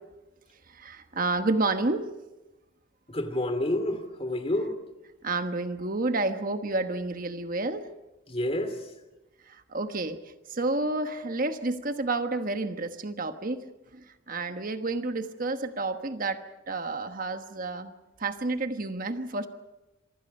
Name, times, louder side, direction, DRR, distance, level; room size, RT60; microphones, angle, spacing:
voice 1, 0.7-2.1 5.2-7.9 9.5-10.2 10.5-13.7 13.9-17.9 18.2-19.5, right 2 dB, 45° right, 8 dB, 1.3 m, -30 dB
voice 2, 3.1-4.8 8.3-8.7, left 1 dB, 30° left, 9 dB, 2.6 m, -29 dB
27.0 x 24.5 x 5.5 m, 1.0 s
head